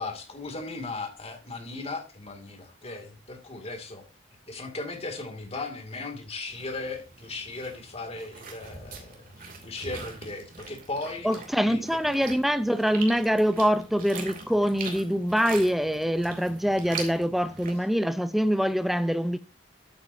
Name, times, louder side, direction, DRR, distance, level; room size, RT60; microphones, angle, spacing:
voice 1, 0.0-4.0 4.5-11.3 11.6-11.8, left 3 dB, 30° left, 2.4 m, -37 dB
sound 1, 6.5-17.8, right 4 dB, 45° right, 2.7 m, -42 dB
voice 2, 11.2-19.4, equal, ahead, 0.5 m, -24 dB
12.0 x 8.6 x 2.7 m
head